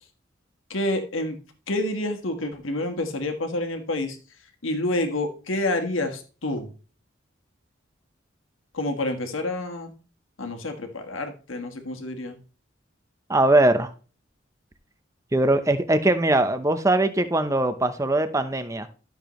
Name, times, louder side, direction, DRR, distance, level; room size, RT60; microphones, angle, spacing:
voice 1, 0.7-1.4 1.7-4.2 4.6-6.7 8.7-9.9 10.4-12.4, left 1 dB, 90° left, 1.5 m, -28 dB
voice 2, 13.3-13.9 15.3-18.9, right 1 dB, 15° right, 0.7 m, -21 dB
12.0 x 7.0 x 3.1 m
head